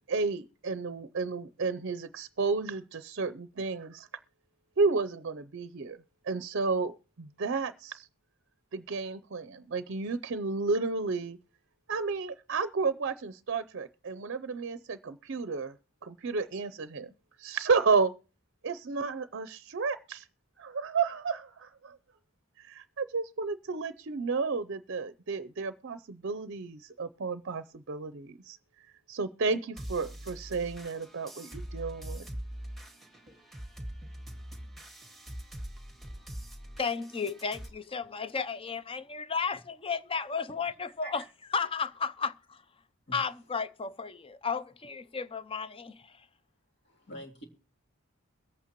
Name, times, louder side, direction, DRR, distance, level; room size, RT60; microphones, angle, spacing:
voice 1, 0.0-4.1 4.8-6.0 6.2-8.1 8.7-11.4 11.9-15.7 16.0-17.1 17.4-18.1 18.6-20.3 20.6-22.0 22.6-28.6 29.1-32.3, right 4 dB, 55° right, 0.5 m, -32 dB
sound 1, 29.8-37.7, equal, ahead, 2.1 m, -43 dB
voice 2, 36.1-36.5 38.0-38.3 40.6-40.7 41.0-41.3 43.1-43.2 46.8-47.4, right 1 dB, 55° left, 3.3 m, -48 dB
voice 3, 36.8-41.2 41.5-42.6 43.1-46.2, left 5 dB, 25° left, 0.5 m, -33 dB
22.5 x 8.5 x 3.0 m
head